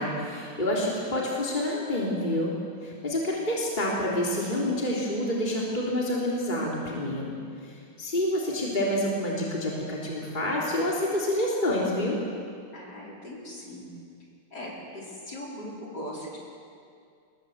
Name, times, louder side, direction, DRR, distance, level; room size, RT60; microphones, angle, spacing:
voice 1, 0.0-2.5 2.8-7.4 7.6-12.2, left 1 dB, 20° left, -4 dB, 3.6 m, -28 dB
voice 2, 12.7-13.9 14.5-16.4, left 1 dB, 45° left, -4 dB, 5.5 m, -39 dB
25.5 x 21.5 x 8.0 m, 2.3 s
omnidirectional pair, 2.4 m